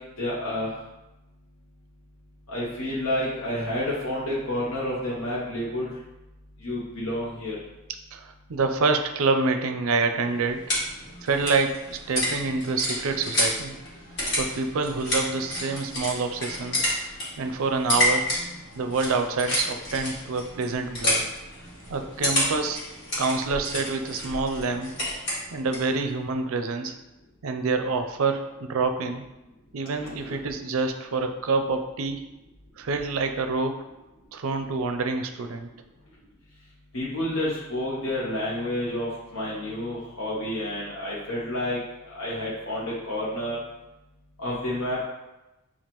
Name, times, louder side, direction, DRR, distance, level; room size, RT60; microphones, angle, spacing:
voice 1, 0.2-0.7 2.5-5.9 6.6-7.6 30.0-30.4 36.9-41.8 42.1-43.6 44.4-45.0, left 1 dB, 70° left, -7 dB, 0.9 m, -29 dB
voice 2, 8.1-10.6 11.2-13.7 14.3-16.8 17.4-18.3 18.8-21.3 21.9-22.8 23.2-24.9 25.5-27.0 27.4-29.2 29.7-32.2 32.8-33.8 34.3-35.7, right 4 dB, 70° right, 6 dB, 0.4 m, -27 dB
sound 1, 10.1-25.9, left 1 dB, 50° left, 1.5 m, -30 dB
7.0 x 2.4 x 3.0 m, 0.99 s
head